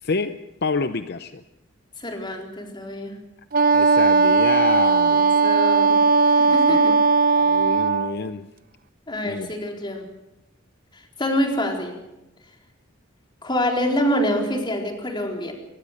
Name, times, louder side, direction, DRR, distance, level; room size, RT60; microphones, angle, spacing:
voice 1, 0.0-1.4 3.7-5.2 6.5-7.0 7.4-8.5 9.2-9.5, left 4 dB, 55° left, 10 dB, 0.8 m, -28 dB
voice 2, 2.0-3.1 5.1-6.0 6.3-6.9 9.1-10.0 10.9-12.0 13.4-15.5, equal, 25° left, 2 dB, 4.1 m, -26 dB
Wind instrument woodwind instrument, 3.5-8.2, right 4 dB, 45° right, 0.8 m, -17 dB
23.5 x 20.5 x 6.6 m, 0.92 s
head